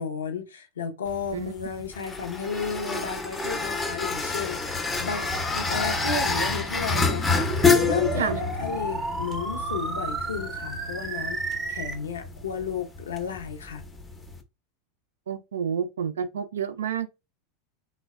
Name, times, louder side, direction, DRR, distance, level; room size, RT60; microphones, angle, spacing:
voice 1, 0.0-13.8, left 6 dB, 75° left, 0.6 m, -33 dB
sound 1, 1.1-14.4, left 4 dB, 15° left, 0.5 m, -28 dB
sound 2, 6.9-11.9, right 3 dB, 20° right, 0.7 m, -32 dB
voice 2, 15.3-17.1, right 7 dB, 75° right, 0.3 m, -29 dB
3.2 x 2.1 x 2.2 m
figure-of-eight pair, 85°, 0 cm